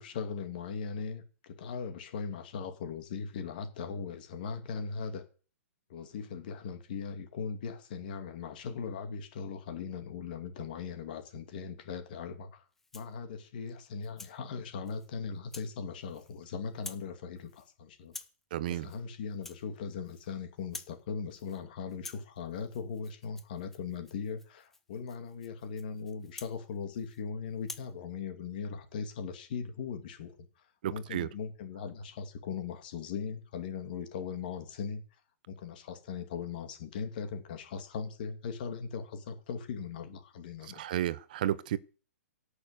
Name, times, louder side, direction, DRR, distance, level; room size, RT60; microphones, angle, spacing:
voice 1, 0.0-5.2 5.9-12.6 12.9-18.1 18.7-35.0 35.5-40.8, left 6 dB, 35° left, 2.4 m, -39 dB
Rattle (instrument), 12.7-13.2 13.7-14.4 14.9-15.1 15.5-15.7 16.0-16.4 16.7-17.1 17.4-17.7 18.1-18.4 18.8-19.0 19.3-20.3 20.6-21.0 21.3-21.6 21.9-27.2 27.6-27.9, left 3 dB, 5° left, 0.7 m, -49 dB
voice 2, 18.5-18.9 30.8-31.3 40.7-41.8, right 12 dB, 35° right, 0.8 m, -32 dB
17.0 x 6.7 x 8.1 m
hypercardioid pair, 175°, 8 cm